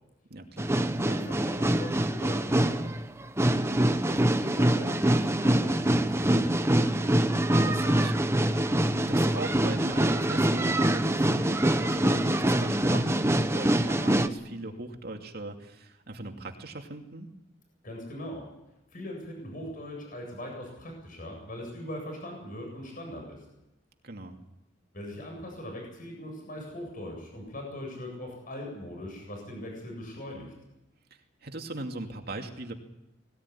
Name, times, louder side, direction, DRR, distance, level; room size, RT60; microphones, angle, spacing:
voice 1, 0.3-0.7 3.5-3.9 7.2-8.2 8.9-17.3 24.0-24.4 31.4-32.7, right 2 dB, 55° right, 3 dB, 2.6 m, -39 dB
sound 1, 0.6-14.3, right 1 dB, 15° right, 1.1 m, -25 dB
voice 2, 1.0-2.9 4.1-6.7 17.8-18.4 18.9-23.4 24.9-30.5, left 1 dB, 45° left, 1 dB, 7.8 m, -40 dB
20.5 x 18.5 x 10.0 m, 0.91 s
head